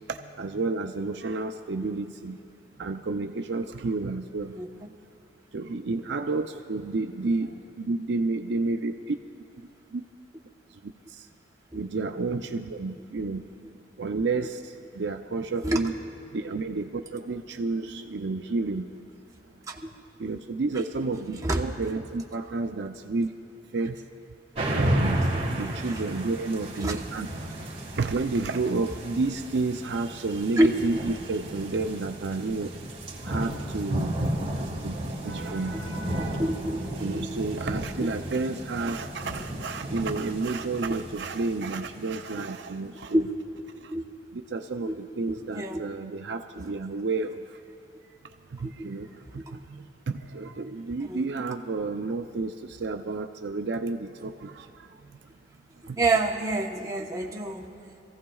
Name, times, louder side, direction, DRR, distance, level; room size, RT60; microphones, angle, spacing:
voice 1, 0.1-2.4 2.8-4.5 5.5-9.2 9.9-10.0 11.7-13.4 14.0-14.6 15.0-15.9 16.3-18.9 20.2-23.3 23.7-24.0 24.7-25.2 25.6-27.3 28.0-32.7 33.2-34.2 34.8-35.0 35.2-36.5 37.0-43.3 44.3-47.4 48.6-49.1 49.3-49.4 49.7-54.7 55.9-56.0, right 3 dB, 65° right, 6 dB, 0.5 m, -30 dB
sound 1, 24.5-42.4, right 1 dB, 35° right, 1.6 m, -33 dB
voice 2, 36.4-36.8 37.1-37.4 38.0-38.1 40.9-41.0 43.1-43.3 43.9-44.0 44.8-45.0 45.3-45.8 48.6-48.7 49.5-49.6 51.1-51.2 56.0-57.7, right 1 dB, 20° right, -1 dB, 1.0 m, -27 dB
26.0 x 15.0 x 2.3 m, 2.7 s
head